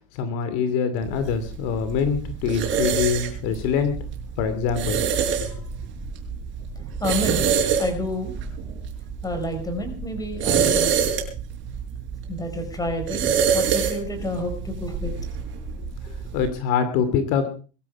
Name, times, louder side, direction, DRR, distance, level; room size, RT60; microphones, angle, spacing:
voice 1, 0.1-3.9 4.4-5.0 5.4-5.7 16.3-17.5, left 6 dB, 55° left, 10 dB, 2.7 m, -24 dB
sound 1, 1.0-16.5, right 7 dB, 35° right, 6.3 m, -27 dB
voice 2, 7.0-7.5 7.8-8.3 9.2-10.9 12.3-15.1, left 1 dB, 10° left, 7 dB, 5.0 m, -29 dB
22.0 x 13.0 x 4.7 m, 0.38 s
supercardioid pair, 160°, 35 cm